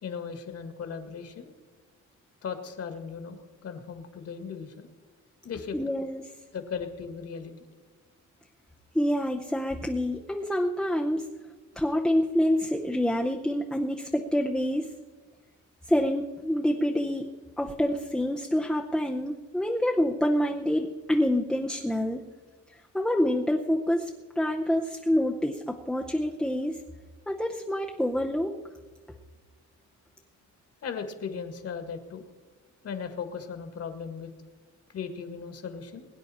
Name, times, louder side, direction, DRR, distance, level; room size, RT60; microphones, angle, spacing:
voice 1, 0.0-1.5 2.4-4.9 5.4-5.8 6.5-7.5 30.8-32.2 32.8-34.3 34.9-36.1, left 6 dB, 50° left, 7 dB, 1.8 m, -37 dB
voice 2, 5.7-6.2 8.9-11.3 11.8-14.9 15.9-17.3 17.6-22.2 22.9-24.1 24.4-26.8 27.3-28.5, equal, ahead, 1 dB, 0.6 m, -27 dB
22.0 x 9.8 x 4.2 m, 1.4 s
cardioid pair, 165°, 30 cm